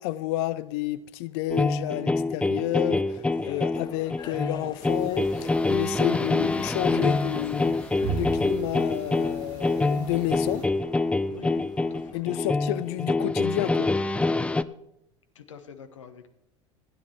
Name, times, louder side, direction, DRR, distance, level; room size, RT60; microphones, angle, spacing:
voice 1, 0.0-7.8 8.1-10.6 12.1-13.9, left 15 dB, 60° left, 0.8 m, -30 dB
sound 1, 1.5-14.6, left 2 dB, 5° left, 0.5 m, -26 dB
sound 2, 2.7-12.2, left 5 dB, 25° left, 2.0 m, -48 dB
sound 3, 4.8-10.7, right 5 dB, 55° right, 3.0 m, -39 dB
voice 2, 11.3-12.3 15.3-16.3, left 6 dB, 80° left, 1.2 m, -45 dB
16.0 x 9.8 x 4.4 m
figure-of-eight pair, 75°, 16 cm